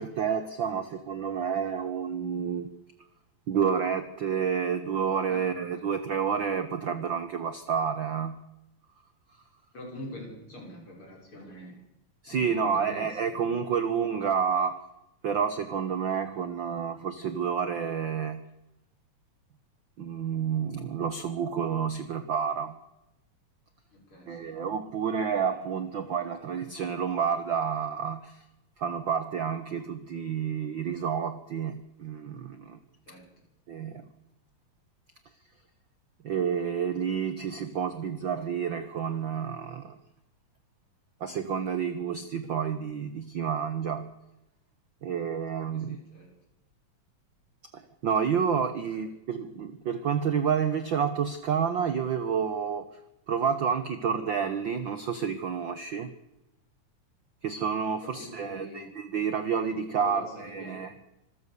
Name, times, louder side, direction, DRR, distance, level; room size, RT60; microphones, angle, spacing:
voice 1, 0.0-2.7 3.5-8.4 12.2-14.8 15.2-18.5 20.0-22.8 24.3-28.4 28.8-32.8 33.7-34.1 36.2-40.0 41.2-44.1 45.0-46.0 47.7-52.9 53.3-56.1 57.4-60.9, right 7 dB, 55° right, 10 dB, 1.4 m, -29 dB
voice 2, 5.3-5.8 9.7-11.8 12.3-13.6 23.9-24.6 33.1-33.3 45.7-46.3 48.9-49.0 58.0-58.9 60.0-60.9, left 1 dB, 45° left, -1 dB, 7.4 m, -45 dB
26.0 x 15.0 x 7.0 m, 0.89 s
omnidirectional pair, 3.4 m